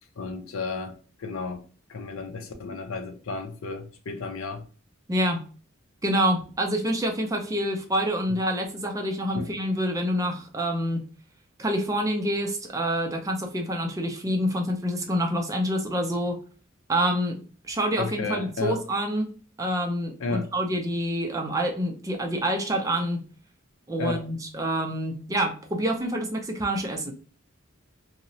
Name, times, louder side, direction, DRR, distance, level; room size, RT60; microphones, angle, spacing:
voice 1, 0.2-1.6 1.9-4.7 9.3-9.5 18.0-18.8 20.2-20.5 24.0-24.3, left 3 dB, 80° left, 0.5 m, -33 dB
voice 2, 5.1-5.4 6.0-11.0 11.6-16.4 16.9-17.4 17.7-19.3 19.6-23.2 23.9-27.1, equal, 15° right, 0.4 m, -27 dB
2.8 x 2.0 x 2.6 m
head